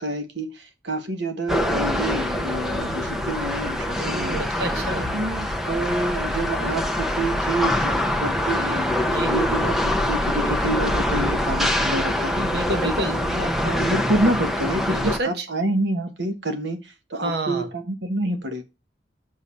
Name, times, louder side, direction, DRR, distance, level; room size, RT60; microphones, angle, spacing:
voice 1, 0.0-4.4 4.9-8.9 9.2-12.4 12.8-18.6, right 2 dB, 80° right, 1.4 m, -28 dB
sound 1, 1.5-15.2, left 1 dB, ahead, 0.8 m, -24 dB
voice 2, 3.9-5.1 9.1-9.3 12.3-13.2 14.8-15.5 17.2-17.7, right 2 dB, 65° right, 1.3 m, -28 dB
6.8 x 6.6 x 5.5 m
head